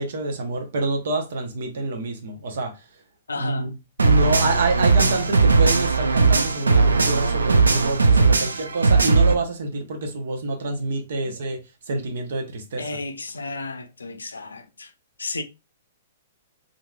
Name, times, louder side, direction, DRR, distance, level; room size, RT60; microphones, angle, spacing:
voice 1, 0.0-2.7 3.4-3.7 4.0-11.6 11.9-12.8, right 2 dB, 60° right, 0.8 m, -27 dB
voice 2, 3.3-3.7 8.3-8.6 11.2-11.3 12.8-14.9 15.2-15.4, left 3 dB, 80° left, 0.5 m, -33 dB
sound 1, 4.0-9.3, right 4 dB, 80° right, 0.4 m, -18 dB
3.0 x 2.5 x 2.3 m
figure-of-eight pair, 115°, 0 cm